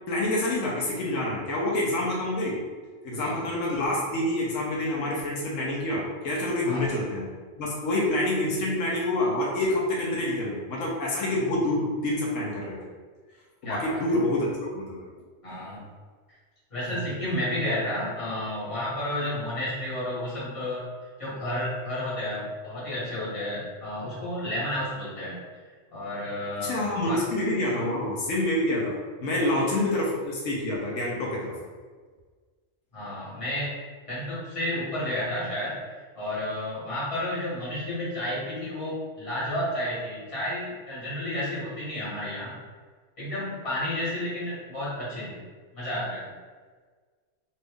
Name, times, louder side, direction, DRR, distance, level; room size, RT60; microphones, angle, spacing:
voice 1, 0.1-2.6 3.0-7.3 7.6-12.8 13.6-15.1 16.9-17.0 26.6-31.6, left 1 dB, 85° left, -4 dB, 1.1 m, -27 dB
voice 2, 13.6-14.0 15.4-15.8 16.7-20.8 21.2-25.4 25.9-27.2 32.9-33.7 34.1-35.8 36.1-42.5 43.2-45.4 45.7-46.3, left 1 dB, 25° left, -9 dB, 1.4 m, -31 dB
2.7 x 2.6 x 3.4 m, 1.5 s
omnidirectional pair, 1.3 m